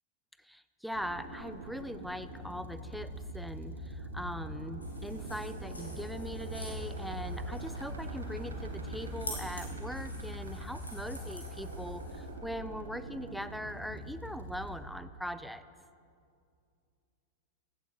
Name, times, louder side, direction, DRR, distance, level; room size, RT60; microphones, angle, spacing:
voice 1, 0.4-15.6, equal, ahead, 13 dB, 0.4 m, -41 dB
sound 1, 0.9-14.7, right 1 dB, 75° right, 1.3 m, -42 dB
sound 2, 4.8-12.3, left 1 dB, 80° left, 2.2 m, -48 dB
16.5 x 8.2 x 3.8 m, 2.4 s
figure-of-eight pair, 90°, 0 cm